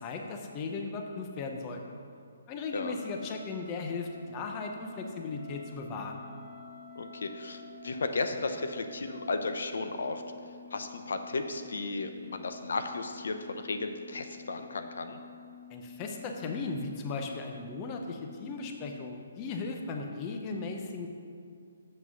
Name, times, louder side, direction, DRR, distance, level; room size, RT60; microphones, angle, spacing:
voice 1, 0.0-1.8 2.5-6.2 15.7-21.1, left 4 dB, 20° left, 3 dB, 0.7 m, -37 dB
Wind instrument woodwind instrument, 2.9-9.7, right 1 dB, ahead, 1.1 m, -52 dB
sound 1, 2.9-19.0, left 7 dB, 45° right, 0.7 m, -51 dB
voice 2, 7.0-10.2 10.7-15.2, left 3 dB, 75° left, 7 dB, 0.7 m, -34 dB
7.5 x 5.9 x 6.2 m, 2.3 s
hypercardioid pair, 165°, 0 cm